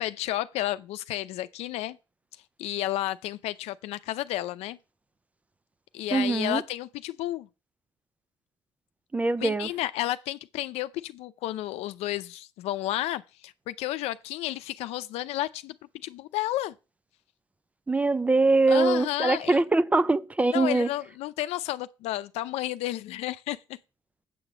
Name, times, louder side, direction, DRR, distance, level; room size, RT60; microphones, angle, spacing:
voice 1, 0.0-2.0 2.6-4.8 5.9-7.5 9.4-15.8 16.0-16.7 18.7-19.6 20.5-23.6, left 15 dB, 85° left, 0.6 m, -31 dB
voice 2, 6.1-6.6 9.1-9.7 17.9-20.9, right 3 dB, 15° right, 0.4 m, -23 dB
8.5 x 4.9 x 7.3 m
cardioid pair, 135°, 10 cm